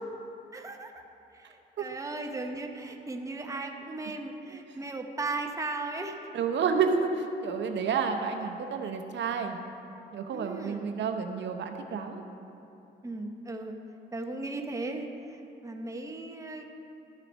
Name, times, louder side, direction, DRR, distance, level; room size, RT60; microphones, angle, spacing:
voice 1, 0.5-1.0 1.3-6.3 10.3-10.9 13.0-13.8 14.1-16.9, right 2 dB, 15° right, 3 dB, 0.9 m, -37 dB
voice 2, 6.3-9.6 10.1-12.2, right 5 dB, 65° right, 5 dB, 0.8 m, -30 dB
12.5 x 6.5 x 5.2 m, 2.9 s
cardioid pair, 90°, 20 cm